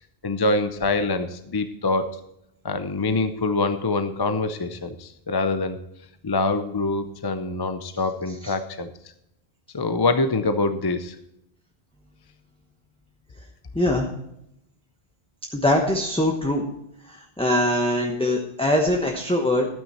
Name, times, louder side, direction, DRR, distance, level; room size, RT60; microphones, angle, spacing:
voice 1, 0.2-2.2 2.6-5.8 6.2-8.9 9.7-11.1, left 3 dB, 30° left, 9 dB, 0.5 m, -25 dB
voice 2, 13.7-14.1 15.5-16.6 17.1-19.7, left 1 dB, 5° left, 1 dB, 1.0 m, -22 dB
12.5 x 9.0 x 4.3 m, 0.80 s
omnidirectional pair, 1.0 m